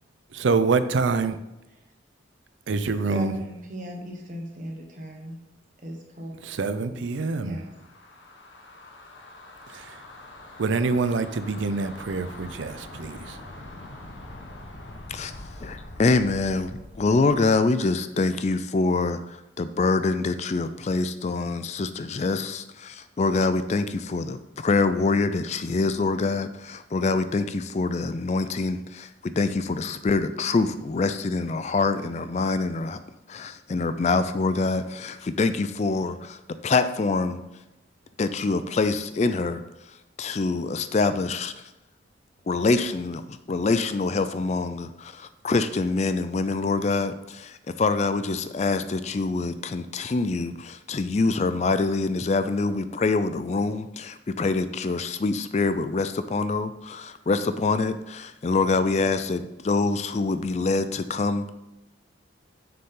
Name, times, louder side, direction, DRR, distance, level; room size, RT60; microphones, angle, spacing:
voice 1, 0.3-1.4 2.7-3.3 6.4-7.6 9.7-10.0 10.6-13.4, right 4 dB, 80° right, 12 dB, 0.5 m, -26 dB
voice 2, 3.1-5.4 5.8-6.4 7.4-7.7, equal, 40° right, 1 dB, 1.4 m, -37 dB
sound 1, 7.5-17.3, left 1 dB, 75° left, 1.2 m, -43 dB
voice 3, 15.6-33.0 33.3-37.4 38.2-39.6 40.2-41.5 42.5-61.5, left 3 dB, 35° left, 11 dB, 0.4 m, -25 dB
6.9 x 6.5 x 3.8 m, 0.94 s
head